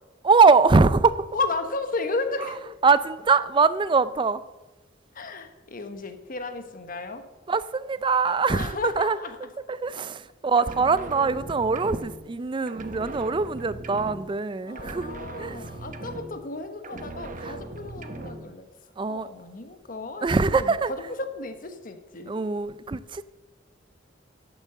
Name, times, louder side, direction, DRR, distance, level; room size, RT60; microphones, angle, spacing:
voice 1, 0.2-1.3 2.8-4.4 7.5-9.2 9.7-15.6 17.4-17.5 19.0-19.3 20.2-20.9 22.3-23.2, right 4 dB, 25° right, 0.4 m, -22 dB
voice 2, 1.3-2.7 5.1-7.3 8.5-9.4 14.6-18.7 19.1-22.3, left 3 dB, 45° left, 1.1 m, -33 dB
sound 1, 10.6-12.4 12.7-14.5 14.8-16.6 16.8-18.5, right 2 dB, 45° right, 0.9 m, -39 dB
11.0 x 7.2 x 6.7 m
head